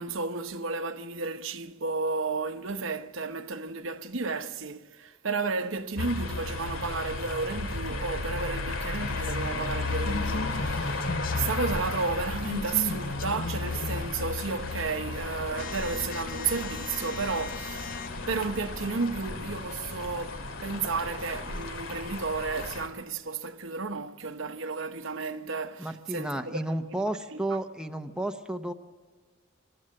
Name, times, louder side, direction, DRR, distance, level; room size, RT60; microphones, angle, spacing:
voice 1, 0.0-11.1 11.4-26.6 26.9-27.0 27.3-27.4, right 4 dB, 70° right, 1.0 m, -32 dB
sound 1, 6.0-22.9, left 2 dB, 80° left, 2.3 m, -34 dB
sound 2, 9.0-21.7, left 4 dB, 45° left, 0.6 m, -39 dB
voice 2, 25.8-28.7, right 1 dB, 5° right, 0.9 m, -32 dB
27.5 x 13.5 x 7.7 m
head